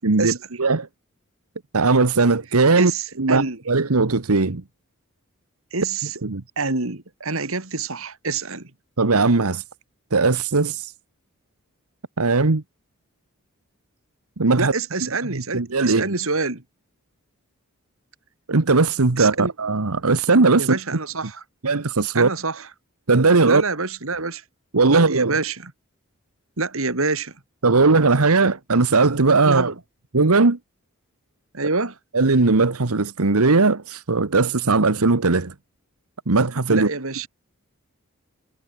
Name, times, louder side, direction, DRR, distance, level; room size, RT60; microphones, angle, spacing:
voice 1, 0.0-0.9 1.7-2.9 3.2-4.6 6.2-6.4 9.0-9.6 10.1-10.9 12.2-12.6 14.4-14.7 15.0-16.1 18.5-20.8 21.6-22.3 23.1-23.6 24.7-25.4 27.6-29.7 30.1-30.6 32.1-35.5 36.3-36.9, right 3 dB, 85° right, 1.2 m, -18 dB
voice 2, 2.8-3.6 5.7-6.2 6.6-8.7 14.6-16.6 19.2-19.5 20.6-21.4 22.1-22.7 23.5-24.4 24.9-25.7 26.6-27.3 28.4-28.5 29.4-29.7 31.5-32.0 36.7-37.3, right 3 dB, 65° right, 2.7 m, -26 dB
head